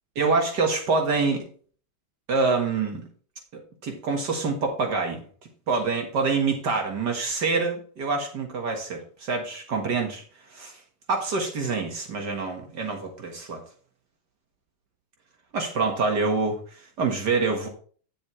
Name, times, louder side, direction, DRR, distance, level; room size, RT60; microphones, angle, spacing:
voice 1, 0.2-1.5 2.3-3.0 3.5-5.2 5.7-10.8 11.1-13.6 15.5-17.7, right 4 dB, 70° right, 3 dB, 2.2 m, -26 dB
10.5 x 7.4 x 3.2 m, 0.43 s
omnidirectional pair, 1.9 m